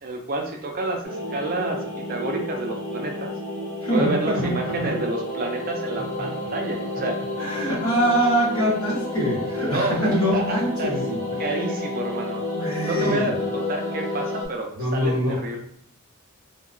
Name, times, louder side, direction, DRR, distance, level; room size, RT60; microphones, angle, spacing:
voice 1, 0.0-1.8 2.1-3.3 3.9-7.2 9.7-10.0 10.3-10.9 11.4-12.4 12.8-15.6, right 2 dB, 40° right, 2 dB, 0.4 m, -29 dB
sound 1, 1.0-14.5, left 2 dB, 35° left, 0.6 m, -30 dB
voice 2, 3.8-4.9 6.2-6.3 7.4-11.5 12.5-13.3 14.7-15.4, equal, 65° left, -5 dB, 1.2 m, -24 dB
2.8 x 2.2 x 2.4 m, 0.67 s
head